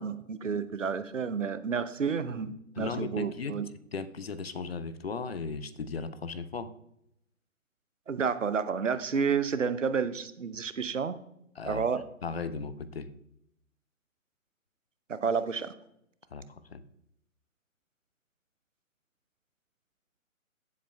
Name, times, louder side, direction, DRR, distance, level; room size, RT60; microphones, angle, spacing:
voice 1, 0.0-3.7 8.1-11.2 11.7-12.0 15.1-15.7, right 6 dB, 65° right, 12 dB, 0.7 m, -30 dB
voice 2, 2.8-3.6 3.9-6.7 11.6-11.8 12.2-13.1 16.3-16.4 16.7-16.8, left 4 dB, 50° left, 14 dB, 0.6 m, -36 dB
14.5 x 7.5 x 2.2 m, 0.78 s
figure-of-eight pair, 135°, 41 cm